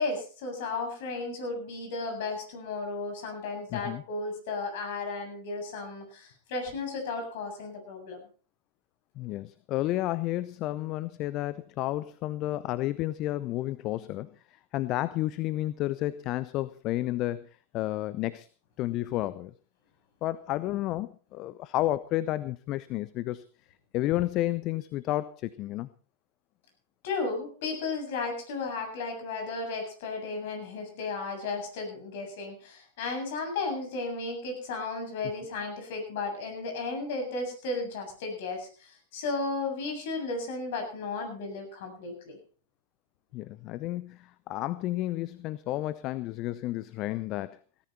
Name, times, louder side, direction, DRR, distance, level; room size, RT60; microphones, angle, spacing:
voice 1, 0.0-8.2 27.0-42.4, left 3 dB, 60° left, 4 dB, 7.5 m, -34 dB
voice 2, 3.7-4.0 9.2-17.5 17.7-18.5 18.8-19.5 20.2-23.4 23.9-25.9 43.3-47.6, left 15 dB, 40° left, 17 dB, 0.7 m, -31 dB
17.5 x 14.0 x 4.4 m, 0.40 s
figure-of-eight pair, 95°, 0 cm